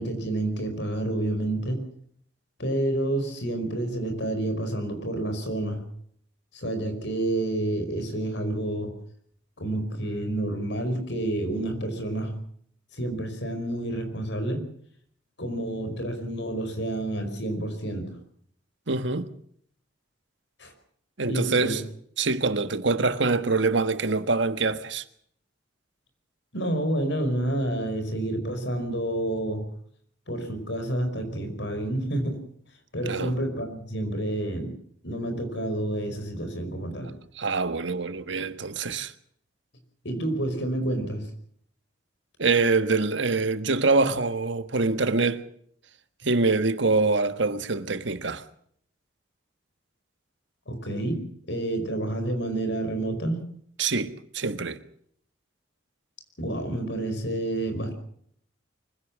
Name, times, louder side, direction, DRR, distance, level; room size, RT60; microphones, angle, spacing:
voice 1, 0.0-1.9 2.6-5.8 6.5-8.9 9.6-12.3 12.9-14.7 15.4-18.2 20.6-20.7 21.3-21.8 26.5-29.7 30.3-32.4 32.9-34.8 35.0-37.1 40.0-41.3 50.7-53.4 56.4-57.9, right 1 dB, 70° left, 5.1 m, -29 dB
voice 2, 18.9-19.3 21.2-21.8 22.2-25.0 33.0-33.3 37.4-39.1 42.4-45.4 46.2-48.4 53.8-54.8, right 3 dB, 75° right, 1.5 m, -25 dB
24.5 x 16.5 x 7.4 m
head